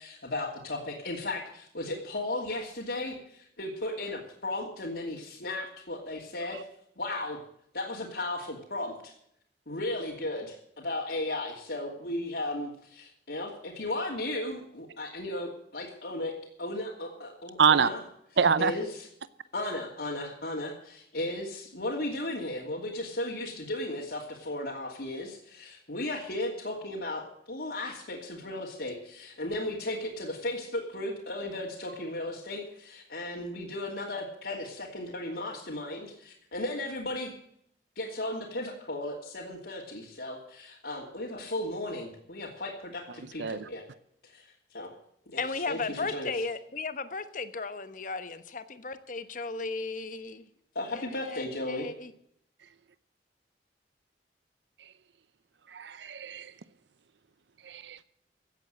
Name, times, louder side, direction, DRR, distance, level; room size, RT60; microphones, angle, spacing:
voice 1, 0.0-6.6 7.0-7.4 7.7-9.1 9.7-16.3 16.6-18.0 18.6-19.1 19.5-37.3 38.0-43.8 44.2-44.9 45.3-46.3 50.7-51.9, left 1 dB, 70° left, -4 dB, 2.9 m, -35 dB
voice 2, 17.6-17.9 18.4-18.7 43.4-43.7 55.7-56.5 57.6-58.0, right 6 dB, 85° right, 16 dB, 0.6 m, -25 dB
voice 3, 45.4-50.4 50.9-52.1, left 3 dB, 50° left, 12 dB, 1.2 m, -35 dB
16.0 x 8.5 x 7.8 m, 0.70 s
head